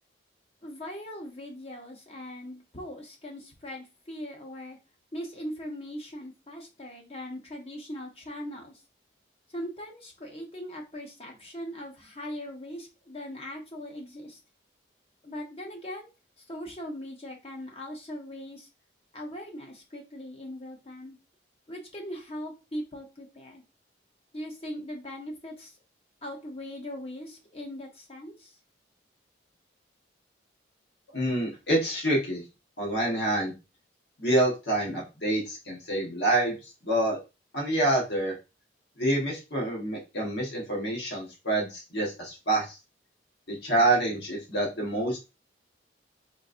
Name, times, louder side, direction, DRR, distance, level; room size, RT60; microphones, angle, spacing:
voice 1, 0.6-4.8 5.1-8.7 9.5-14.4 15.2-16.1 16.5-18.7 19.1-21.2 21.7-23.6 24.3-25.8 26.2-28.6, equal, 30° left, 1 dB, 0.7 m, -40 dB
voice 2, 31.1-32.4 32.8-33.5 34.2-36.5 36.8-37.2 37.5-38.3 39.0-42.8 43.5-45.2, right 1 dB, 65° left, -2 dB, 1.1 m, -27 dB
3.9 x 2.5 x 2.5 m, 0.28 s
head